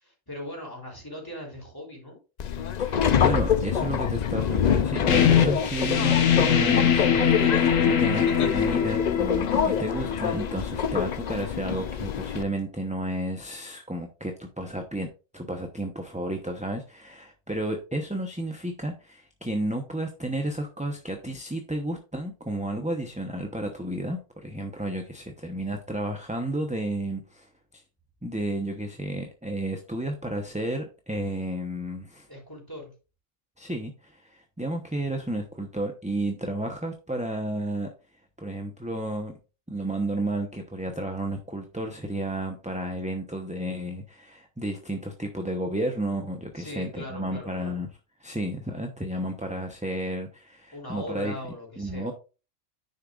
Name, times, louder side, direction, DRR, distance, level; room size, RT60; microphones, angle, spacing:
voice 1, 0.0-2.2 32.3-32.9 46.5-47.8 50.7-52.1, left 1 dB, 15° left, -2 dB, 3.4 m, -39 dB
Subway metro underground, 2.4-12.4, left 8 dB, 55° left, 0.5 m, -26 dB
voice 2, 2.8-15.1 15.3-27.5 28.2-32.3 33.6-37.9 38.4-39.3 39.7-47.9 48.2-51.3 51.8-52.1, right 1 dB, 5° right, 4 dB, 0.8 m, -32 dB
sound 1, 5.1-10.5, left 8 dB, 80° left, 1.5 m, -22 dB
10.0 x 6.6 x 2.5 m, 0.32 s
omnidirectional pair, 1.3 m